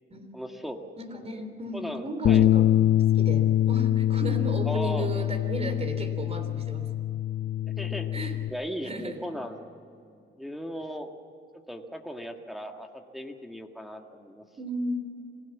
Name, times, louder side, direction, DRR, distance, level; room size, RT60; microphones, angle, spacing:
voice 1, 0.3-0.8 1.7-2.5 4.6-5.3 7.8-9.6 10.4-11.1 11.7-14.4, equal, ahead, 3 dB, 1.9 m, -37 dB
voice 2, 1.0-2.8 3.1-6.9 8.1-8.3 8.8-9.2 14.6-15.0, right 1 dB, 30° right, 8 dB, 3.4 m, -34 dB
Bass guitar, 2.2-8.5, left 12 dB, 60° left, 1.0 m, -24 dB
25.5 x 17.0 x 7.3 m, 2.6 s
cardioid pair, 90°, 20 cm